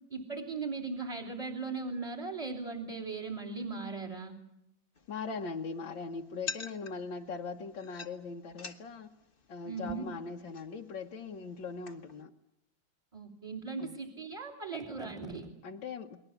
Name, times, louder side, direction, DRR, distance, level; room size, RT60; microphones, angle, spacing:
voice 1, 0.1-4.3 9.6-10.0 13.1-15.5, right 4 dB, 15° right, 3.0 m, -38 dB
sound 1, 4.9-12.2, left 5 dB, 30° left, 1.4 m, -48 dB
voice 2, 5.1-9.1 9.5-12.3 13.8-13.9 15.6-16.2, left 4 dB, 75° left, 1.9 m, -40 dB
29.5 x 21.5 x 7.0 m
omnidirectional pair, 2.0 m